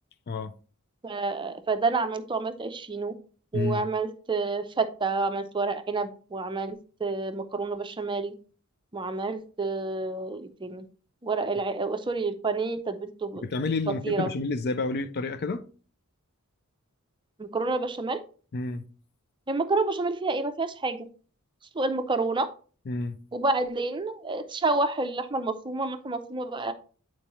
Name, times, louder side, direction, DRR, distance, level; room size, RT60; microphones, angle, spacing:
voice 1, 1.0-3.1 3.5-8.3 8.9-10.8 11.2-13.4 13.9-14.3 17.4-18.2 19.5-21.1 21.8-22.5 23.3-26.7, right 3 dB, 20° right, 0.5 m, -29 dB
voice 2, 13.4-15.6 18.5-18.8 22.9-23.1, left 3 dB, 50° left, 0.5 m, -29 dB
8.4 x 4.5 x 3.0 m
head